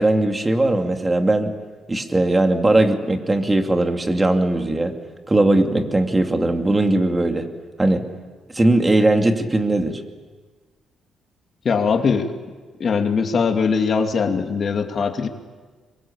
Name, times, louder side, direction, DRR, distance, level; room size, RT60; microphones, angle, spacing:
voice 1, 0.0-1.5 1.9-4.9 5.3-7.5 7.8-8.0 8.5-10.0, right 2 dB, 20° right, 5 dB, 2.6 m, -19 dB
voice 2, 11.6-12.3 12.8-15.3, left 5 dB, 50° left, 5 dB, 2.6 m, -21 dB
26.0 x 22.5 x 8.7 m, 1.4 s
cardioid pair, 90°, 0 cm